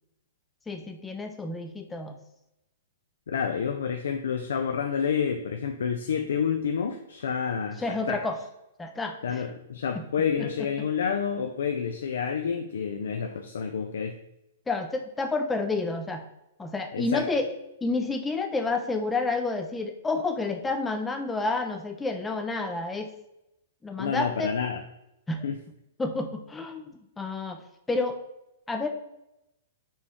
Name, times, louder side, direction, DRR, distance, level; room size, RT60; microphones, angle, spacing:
voice 1, 0.7-2.2 7.8-8.4 8.8-9.4 10.4-10.5 14.7-16.2 16.6-17.5 17.8-23.1 23.8-24.5 25.3-25.4 26.0-27.6 27.9-28.2 28.7-28.9, left 3 dB, 10° left, 5 dB, 0.3 m, -29 dB
voice 2, 3.3-8.2 9.2-14.2 16.9-17.3 24.0-24.8 25.4-25.6, left 7 dB, 85° left, 6 dB, 0.4 m, -29 dB
4.2 x 3.0 x 3.5 m, 0.85 s
hypercardioid pair, 160°, 0 cm